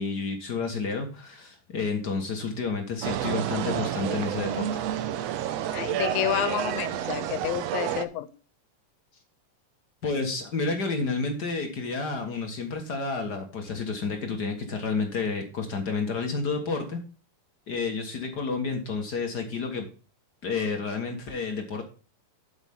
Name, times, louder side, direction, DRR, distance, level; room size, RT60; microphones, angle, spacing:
voice 1, 0.0-4.8 10.0-17.0 17.7-19.9 20.4-21.8, left 4 dB, 55° left, 4 dB, 1.1 m, -30 dB
sound 1, 3.0-8.0, right 11 dB, 90° right, 1.4 m, -30 dB
voice 2, 5.7-8.3, left 14 dB, 85° left, 15 dB, 2.5 m, -29 dB
8.3 x 8.0 x 3.6 m, 0.37 s
omnidirectional pair, 4.0 m